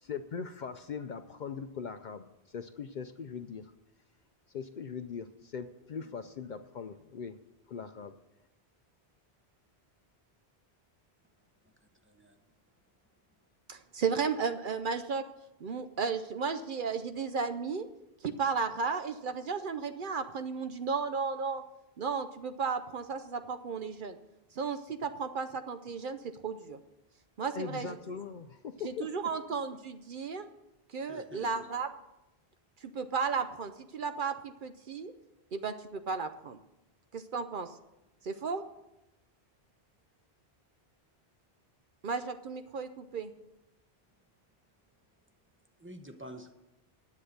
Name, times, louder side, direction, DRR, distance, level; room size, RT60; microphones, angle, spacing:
voice 1, 0.0-3.7 4.5-7.4 7.7-8.1 27.5-29.1, left 6 dB, 55° left, 9 dB, 0.6 m, -40 dB
voice 2, 11.6-12.5 31.1-31.7 45.8-46.5, equal, 10° right, 5 dB, 0.9 m, -49 dB
voice 3, 13.7-15.2 15.6-17.9 18.2-21.6 22.0-24.2 24.5-26.8 27.4-28.0 28.8-30.5 30.9-31.9 32.8-35.1 35.5-36.6 37.1-37.8 38.2-38.6 42.0-43.3, right 5 dB, 55° right, 9 dB, 0.7 m, -34 dB
10.0 x 8.4 x 6.6 m, 0.94 s
omnidirectional pair, 1.1 m